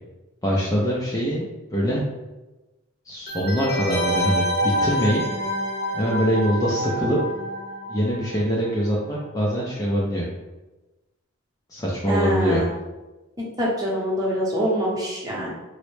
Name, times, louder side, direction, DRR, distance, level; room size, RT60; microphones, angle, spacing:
voice 1, 0.4-2.0 3.1-5.2 5.9-7.2 7.9-10.2 11.7-12.6, equal, 15° left, -5 dB, 0.4 m, -23 dB
sound 1, 3.3-8.7 9.0-9.1, equal, 50° left, 0.9 m, -27 dB
voice 2, 12.1-12.7 13.6-15.5, equal, 20° right, -5 dB, 0.8 m, -24 dB
3.9 x 2.1 x 3.1 m, 1.1 s
head